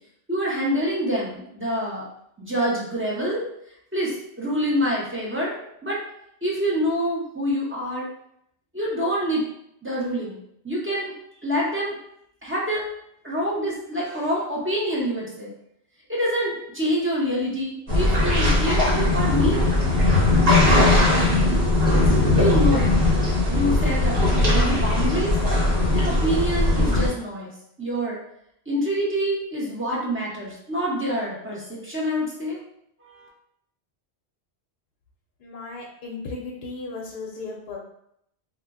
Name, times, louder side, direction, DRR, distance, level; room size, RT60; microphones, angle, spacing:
voice 1, 0.3-2.0 2.4-3.4 3.9-5.5 5.8-6.0 6.4-8.1 8.7-9.4 9.8-10.4 10.6-11.1 11.4-11.9 12.4-12.8 13.2-15.5 16.1-19.7 21.0-21.2 22.3-22.9 23.5-25.3 25.9-27.5 27.8-28.2 28.7-32.6 33.0-33.3, equal, 15° right, -5 dB, 0.4 m, -26 dB
sound 1, 17.9-27.1, left 2 dB, 55° right, 1.0 m, -19 dB
voice 2, 35.4-37.8, left 3 dB, 65° left, -2 dB, 0.7 m, -35 dB
2.1 x 2.0 x 3.4 m, 0.74 s
omnidirectional pair, 1.1 m